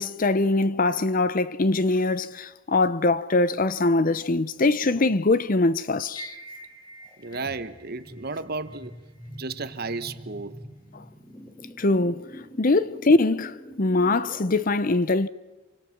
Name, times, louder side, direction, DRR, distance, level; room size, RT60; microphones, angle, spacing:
voice 1, 0.0-6.3 11.8-12.2 12.6-15.3, left 2 dB, 40° left, 0.7 m, -22 dB
sound 1, 6.2-14.6, equal, 15° left, 3.7 m, -44 dB
voice 2, 7.2-9.0 9.4-10.6, right 3 dB, 50° right, 1.1 m, -33 dB
28.0 x 24.5 x 6.0 m
head